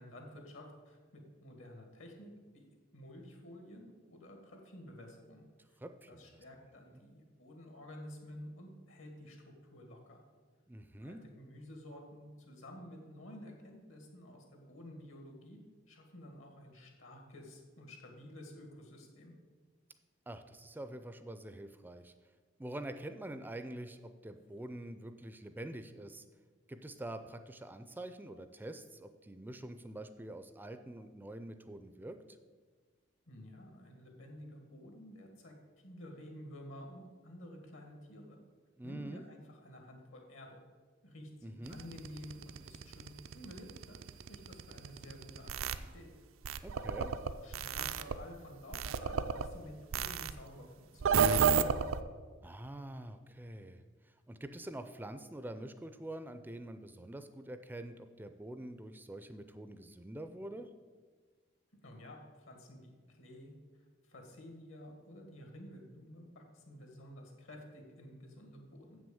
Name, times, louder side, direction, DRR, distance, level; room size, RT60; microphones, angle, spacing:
voice 1, 0.0-2.6 2.9-5.4 6.1-10.2 11.0-15.6 15.9-19.3 33.3-38.4 38.8-40.6 41.0-46.1 47.0-47.2 47.4-51.4 61.8-63.5 64.1-69.0, left 1 dB, 75° left, 3 dB, 1.8 m, -51 dB
voice 2, 5.8-6.4 10.7-11.2 20.3-22.1 22.6-26.2 26.7-32.2 38.8-39.2 41.4-41.8 46.6-47.1 52.4-60.7, right 1 dB, 10° right, 9 dB, 0.4 m, -46 dB
sound 1, 41.7-45.8 46.4-48.2 48.7-49.5 49.9-50.3 51.0-52.0, right 6 dB, 80° right, 0.5 m, -31 dB
7.6 x 6.1 x 7.0 m, 1.5 s
head